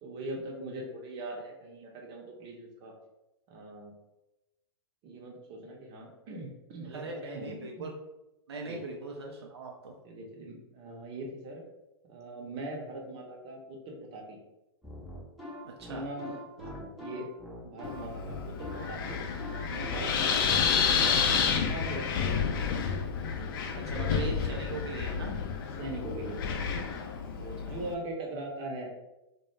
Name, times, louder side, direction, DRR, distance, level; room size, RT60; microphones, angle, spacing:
voice 1, 0.0-2.9 3.5-3.9 5.0-7.9 8.6-8.8 10.0-11.6 12.1-14.4 15.9-16.3 16.7-17.3 17.6-19.2 19.7-22.6 23.3-24.1 25.8-26.7 27.4-28.9, right 1 dB, 35° right, 0 dB, 0.7 m, -41 dB
voice 2, 6.9-7.9 8.5-9.9 15.6-16.1 16.6-16.8 23.7-25.4 27.7-27.8, right 3 dB, 75° right, 0 dB, 0.4 m, -40 dB
sound 1, 14.8-21.4, left 1 dB, ahead, 0.6 m, -43 dB
Wind, 17.8-27.9, left 6 dB, 55° left, 0.4 m, -30 dB
2.1 x 2.1 x 3.1 m, 0.96 s
figure-of-eight pair, 105°, 14 cm